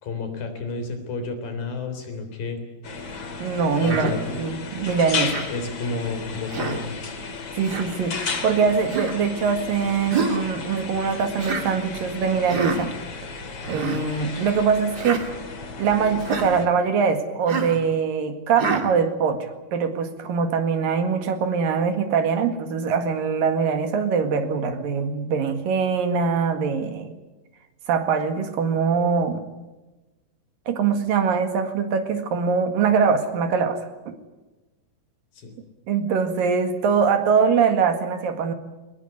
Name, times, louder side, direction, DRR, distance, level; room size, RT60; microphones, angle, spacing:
voice 1, 0.0-2.6 3.8-4.4 5.5-6.9 35.3-35.5, left 3 dB, 80° left, 7 dB, 5.3 m, -31 dB
sound 1, 2.8-16.7, left 4 dB, 40° left, 2.7 m, -34 dB
voice 2, 3.4-5.4 7.6-12.9 13.7-15.2 15.8-27.2 27.9-29.4 30.7-34.1 35.9-38.5, right 6 dB, 80° right, 7 dB, 3.7 m, -23 dB
Human voice, 3.8-4.1 5.2-5.5 6.5-6.8 7.6-7.9 8.9-9.2 10.1-10.4 11.4-11.7 12.5-12.8 13.6-14.0 14.9-15.2 16.2-16.5 17.5-17.8 18.6-18.9, right 4 dB, 30° right, 2.5 m, -27 dB
22.5 x 19.5 x 9.4 m, 1.1 s
omnidirectional pair, 4.0 m